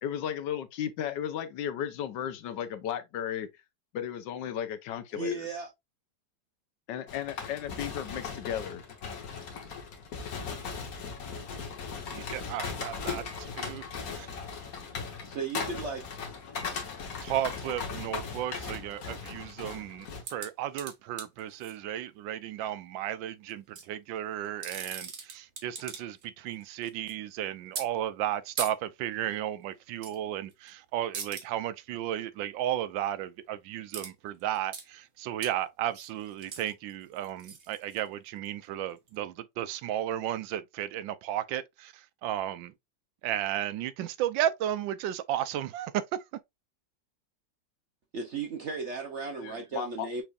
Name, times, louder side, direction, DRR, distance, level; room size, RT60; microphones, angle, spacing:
voice 1, 0.0-3.5 3.9-5.5 6.9-8.8 49.4-50.1, left 9 dB, 75° left, 1.3 m, -35 dB
voice 2, 5.1-5.7 15.2-16.1 48.1-50.2, right 3 dB, 65° right, 0.7 m, -35 dB
sound 1, 7.1-20.2, left 5 dB, 55° left, 1.5 m, -38 dB
voice 3, 12.1-13.8 14.2-14.3 17.2-42.7 43.2-46.0, right 12 dB, 90° right, 1.3 m, -34 dB
sound 2, 20.2-21.8 23.5-23.9 24.4-26.2 26.5-27.1 27.8-27.9 28.6-28.7 30.0-30.2 30.5-30.7 31.1-31.4 33.9-34.1 34.4-34.9 35.4-35.5 35.9-38.5 39.1-39.2, right 5 dB, 45° right, 1.0 m, -40 dB
6.0 x 3.2 x 2.4 m
omnidirectional pair, 2.0 m